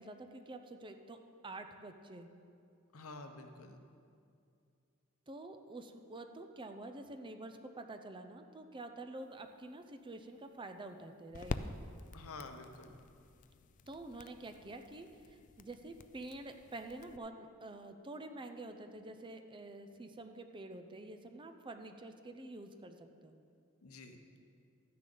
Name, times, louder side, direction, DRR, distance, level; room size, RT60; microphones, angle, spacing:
voice 1, 0.0-2.3 5.3-11.6 13.9-23.4, right 2 dB, 20° right, 6 dB, 0.5 m, -48 dB
voice 2, 2.9-3.8 12.1-13.0 23.8-24.2, left 3 dB, 70° left, 6 dB, 0.9 m, -49 dB
sound 1, 9.2-17.2, left 4 dB, 35° left, 0.3 m, -48 dB
13.0 x 9.8 x 3.9 m, 2.4 s
head